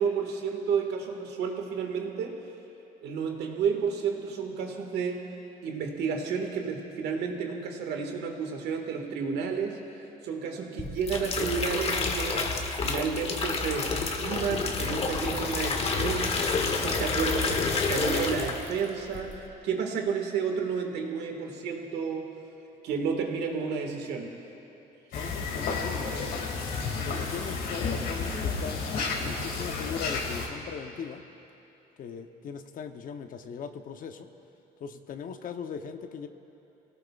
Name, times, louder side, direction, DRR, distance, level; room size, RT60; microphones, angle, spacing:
voice 1, 0.0-2.4 3.0-5.2 5.6-9.8 10.2-12.4 12.8-16.3 16.7-22.3 22.8-24.3, right 6 dB, 75° right, 2 dB, 1.9 m, -31 dB
sound 1, 10.8-18.8 19.1-19.5, left 4 dB, 35° left, 1.4 m, -29 dB
sound 2, 25.1-30.5, left 4 dB, 70° left, 2.4 m, -31 dB
voice 2, 25.1-26.5 27.0-28.9 29.2-31.2 32.0-34.3 34.8-36.3, left 6 dB, 55° left, 7 dB, 0.9 m, -39 dB
26.0 x 17.5 x 2.4 m, 2.9 s
cardioid pair, 110°, 17 cm